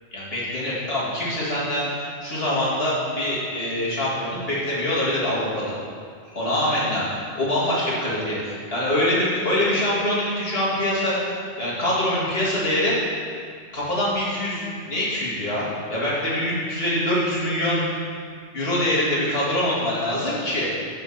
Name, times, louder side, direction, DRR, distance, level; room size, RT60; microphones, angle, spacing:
voice 1, 0.1-5.7 6.3-7.0 7.3-11.2 11.6-13.0 13.7-17.8 18.5-20.7, left 1 dB, 55° left, -7 dB, 2.2 m, -24 dB
5.7 x 5.4 x 6.6 m, 2.2 s
omnidirectional pair, 1.2 m